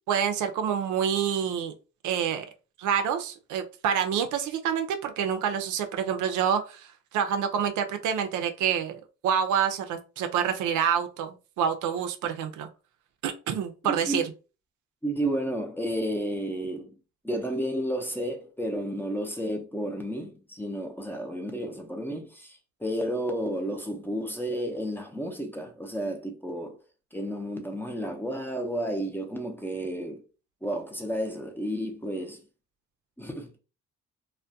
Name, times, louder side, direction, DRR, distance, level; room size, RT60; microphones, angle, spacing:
voice 1, 0.1-1.7 2.0-2.5 2.8-12.7 13.2-14.3, right 8 dB, 80° right, 0.5 m, -27 dB
voice 2, 15.0-17.0 17.2-26.8 27.1-30.2 30.6-32.4 33.2-33.6, equal, 5° left, 0.5 m, -32 dB
2.2 x 2.1 x 2.6 m
cardioid pair, 90°, 30 cm